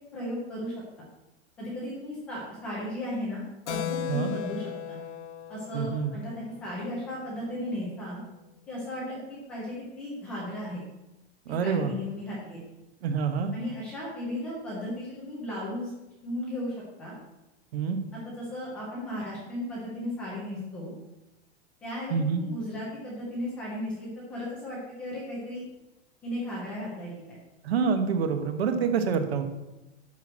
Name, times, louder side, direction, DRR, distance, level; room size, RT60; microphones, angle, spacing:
voice 1, 0.1-0.7 1.6-5.0 5.5-8.2 8.7-10.8 11.6-12.6 13.5-15.9 16.2-17.1 18.1-20.9 21.8-25.7 26.2-27.4 28.7-28.8, left 1 dB, 5° left, -6 dB, 0.3 m, -35 dB
Keyboard (musical), 3.7-7.8, left 9 dB, 80° left, 0.9 m, -37 dB
voice 2, 5.7-6.1 11.5-11.9 13.0-13.5 17.7-18.0 22.1-22.4 27.6-29.4, right 6 dB, 65° right, 7 dB, 1.3 m, -26 dB
11.5 x 4.4 x 7.4 m, 1.0 s
supercardioid pair, 180°, 34 cm